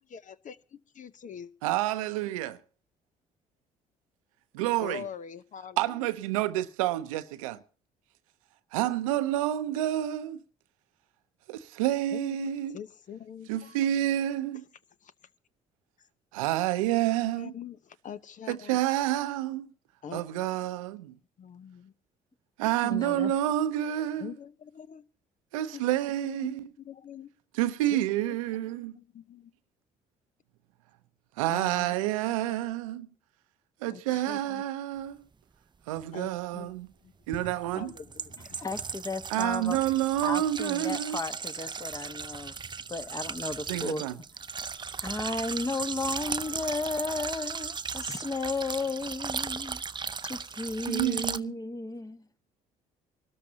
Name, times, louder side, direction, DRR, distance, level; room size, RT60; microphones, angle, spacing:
voice 1, 0.0-1.5 4.8-6.0 12.1-13.8 15.0-15.1 16.8-17.0 17.2-18.8 20.0-20.5 21.4-21.9 24.2-25.0 25.7-25.8 26.2-26.4 26.8-27.3 27.9-28.4 28.6-29.5 31.5-31.9 32.3-32.4 33.9-34.6 36.1-36.7 37.0-37.1 37.5-38.7, left 8 dB, 50° left, 0.9 m, -44 dB
voice 2, 1.6-2.6 4.5-5.0 5.8-7.6 8.7-10.4 11.5-12.8 13.5-14.6 16.3-17.5 18.5-19.7 20.1-21.1 22.6-24.3 25.5-26.7 27.5-29.0 31.4-33.1 33.8-35.3 35.9-36.9 37.3-37.9 39.3-41.2 43.7-44.2 50.9-51.6, right 13 dB, 90° right, 0.7 m, -29 dB
voice 3, 22.8-23.3 26.4-26.5 38.6-39.8 40.2-42.5 42.9-44.0 45.0-49.8 50.2-52.2, left 3 dB, 20° left, 1.3 m, -34 dB
sound 1, 36.0-36.1 37.3-51.4, right 5 dB, 25° right, 0.6 m, -37 dB
24.5 x 13.5 x 2.8 m
hypercardioid pair, 60°, 17 cm